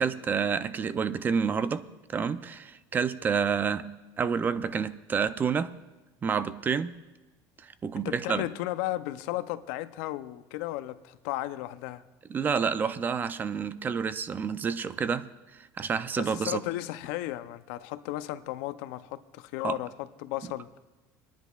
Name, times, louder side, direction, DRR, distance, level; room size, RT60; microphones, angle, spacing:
voice 1, 0.0-3.9 4.2-5.8 6.2-7.0 7.6-8.4 12.3-15.3 15.5-16.6 19.6-19.8, right 6 dB, 25° right, 0.4 m, -29 dB
voice 2, 8.0-12.0 16.2-20.7, left 15 dB, 85° left, 0.5 m, -34 dB
26.0 x 10.0 x 2.3 m
cardioid pair, 145°, 8 cm